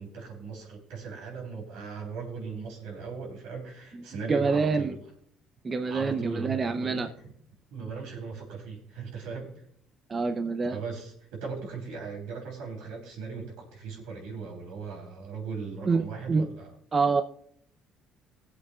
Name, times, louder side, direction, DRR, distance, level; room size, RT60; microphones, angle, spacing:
voice 1, 0.0-4.9 5.9-7.1 7.7-9.5 10.7-16.7, right 5 dB, 85° right, 0 dB, 3.6 m, -38 dB
voice 2, 4.3-4.9 5.6-7.1 10.1-10.8 15.9-16.5 16.9-17.2, right 4 dB, 35° right, 7 dB, 0.7 m, -26 dB
20.0 x 7.9 x 2.4 m, 0.66 s
supercardioid pair, 80°, 0 cm